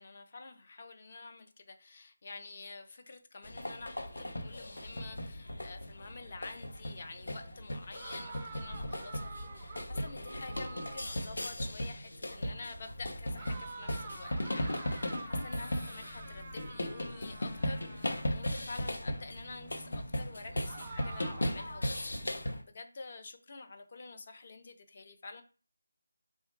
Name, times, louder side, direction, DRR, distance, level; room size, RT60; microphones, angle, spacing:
voice 1, 0.0-25.4, left 3 dB, 35° left, 7 dB, 0.5 m, -48 dB
sound 1, 3.4-22.6, left 1 dB, 75° left, 0.8 m, -37 dB
sound 2, 7.9-11.3 13.4-18.6 20.6-21.7, right 4 dB, 20° right, 0.4 m, -48 dB
3.6 x 2.2 x 4.4 m, 0.36 s
figure-of-eight pair, 175°, 0 cm